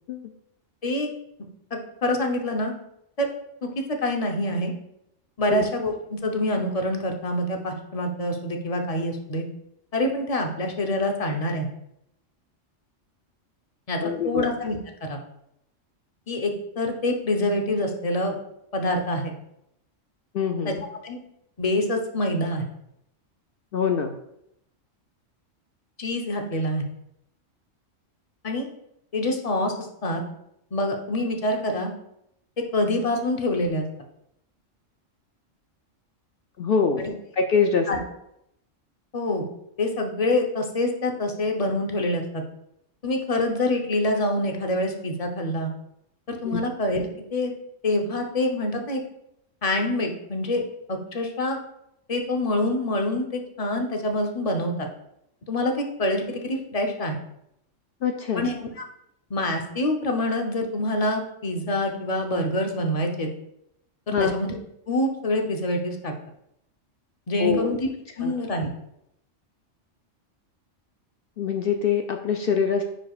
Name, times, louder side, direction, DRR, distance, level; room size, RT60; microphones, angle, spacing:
voice 1, 1.7-2.7 3.2-3.3 3.6-3.7 4.0-4.7 5.4-9.5 9.9-11.7 13.9-14.0 14.2-15.2 16.3-18.4 18.7-19.3 20.7-20.8 21.0-21.2 21.6-22.7 26.0-26.9 28.4-28.7 29.1-30.2 30.7-31.9 32.7-33.8 37.0-37.1 37.9-38.0 39.1-39.5 39.8-42.4 43.0-45.7 46.3-47.5 47.8-49.0 49.6-50.6 50.9-51.6 52.1-54.9 55.5-57.2 58.4-58.7 59.3-63.3 64.1-64.6 64.9-66.1 67.3-67.9 68.2-68.7, left 1 dB, 35° left, 3 dB, 0.8 m, -26 dB
voice 2, 14.0-14.4 20.3-20.8 23.7-24.2 36.6-37.0 37.3-37.9 46.4-46.6 58.0-58.5 64.1-64.3 67.4-67.8 68.2-68.3 71.4-72.8, left 6 dB, 60° left, 5 dB, 0.6 m, -24 dB
9.9 x 4.7 x 2.4 m, 0.78 s
omnidirectional pair, 1.3 m